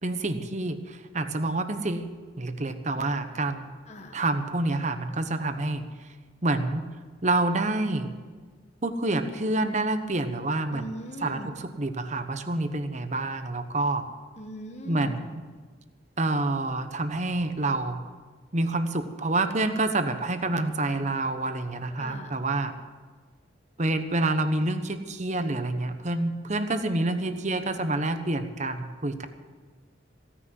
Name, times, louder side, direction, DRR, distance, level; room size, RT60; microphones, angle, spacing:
voice 1, 0.0-3.7 4.1-6.1 6.4-6.8 7.2-8.1 8.8-10.9 11.2-14.1 14.8-15.4 16.2-18.0 18.5-22.7 23.8-29.3, right 2 dB, 35° right, 9 dB, 1.1 m, -28 dB
voice 2, 10.7-11.5 14.4-15.1 22.0-22.4, equal, 35° left, 3 dB, 1.3 m, -40 dB
16.5 x 10.0 x 7.7 m, 1.5 s
head